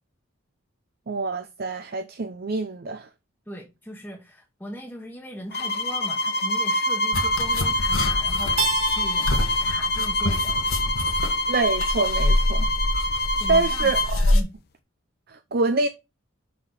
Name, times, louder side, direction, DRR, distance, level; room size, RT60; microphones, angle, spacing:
voice 1, 1.1-3.1 11.5-12.7 13.5-14.3 15.3-15.9, right 3 dB, 50° right, 0.6 m, -26 dB
voice 2, 3.5-10.7 13.4-13.9 14.3-14.5, equal, 10° left, 1.2 m, -39 dB
sound 1, 5.5-14.1, left 1 dB, 50° left, 1.0 m, -25 dB
sound 2, 7.1-14.4, left 1 dB, 85° left, 1.5 m, -26 dB
Keyboard (musical), 8.6-11.4, right 5 dB, 85° right, 0.9 m, -33 dB
6.2 x 5.9 x 4.7 m
head